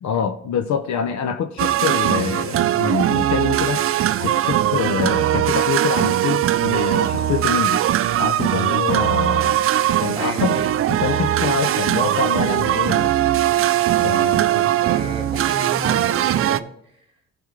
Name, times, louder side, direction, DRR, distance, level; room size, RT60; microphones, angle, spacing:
voice 1, 0.0-3.8 4.2-7.8 8.2-9.6 10.0-10.5 11.0-13.1 14.0-14.7, left 7 dB, 70° left, 0.8 m, -25 dB
sound 1, 1.6-16.6, right 12 dB, 50° right, 0.4 m, -20 dB
voice 2, 10.2-10.7 14.8-16.6, right 2 dB, 20° right, 2.9 m, -31 dB
14.5 x 5.2 x 3.2 m
cardioid pair, 90°, 30 cm